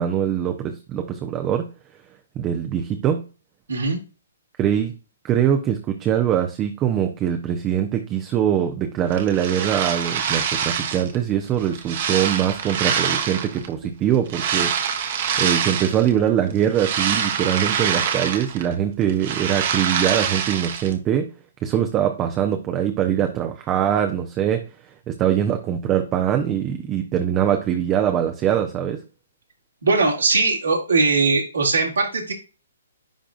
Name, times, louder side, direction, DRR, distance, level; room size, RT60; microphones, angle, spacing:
voice 1, 0.0-1.7 2.4-3.2 4.6-4.9 5.2-14.7 15.4-21.3 21.6-24.6 25.1-29.0, right 10 dB, 25° right, 6 dB, 0.7 m, -22 dB
voice 2, 3.7-4.0 29.8-32.3, right 3 dB, 75° right, -2 dB, 2.3 m, -20 dB
sound 1, 9.1-11.2 11.6-13.7 14.3-16.1 16.5-18.7 19.0-20.9, right 7 dB, 45° right, 1.2 m, -25 dB
10.5 x 3.7 x 2.5 m, 0.32 s
figure-of-eight pair, 125°, 0 cm